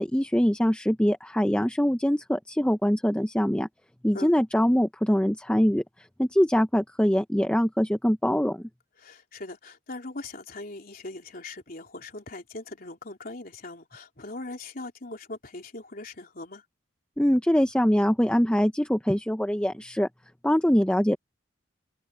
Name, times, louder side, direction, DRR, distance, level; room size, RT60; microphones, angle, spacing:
voice 1, 0.0-3.7 4.0-5.8 6.2-8.7 17.2-20.1 20.4-21.2, equal, 5° left, 0.7 m, -23 dB
voice 2, 9.0-16.6, left 2 dB, 50° left, 3.6 m, -40 dB
open air
head